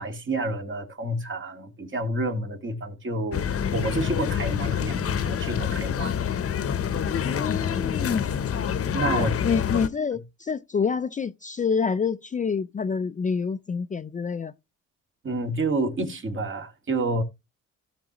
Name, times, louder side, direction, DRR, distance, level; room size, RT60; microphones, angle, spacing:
voice 1, 0.0-6.2 8.9-9.3 15.2-17.2, right 2 dB, 40° right, 2.1 m, -29 dB
sound 1, 3.3-9.9, left 8 dB, 50° left, 0.9 m, -27 dB
voice 2, 7.2-8.3 9.1-14.5, left 5 dB, 25° left, 0.5 m, -27 dB
16.0 x 6.0 x 3.0 m
cardioid pair, 90°, 30 cm